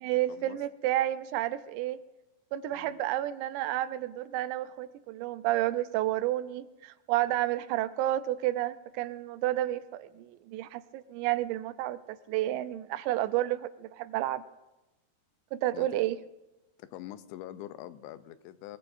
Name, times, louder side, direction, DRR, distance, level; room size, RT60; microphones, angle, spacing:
voice 1, 0.0-2.0 2.5-14.4 15.5-16.2, right 14 dB, 85° right, 13 dB, 2.9 m, -31 dB
voice 2, 2.7-3.0 15.7-15.9 16.8-18.8, left 13 dB, 85° left, 12 dB, 3.0 m, -44 dB
23.5 x 21.5 x 2.6 m, 1.0 s
omnidirectional pair, 5.0 m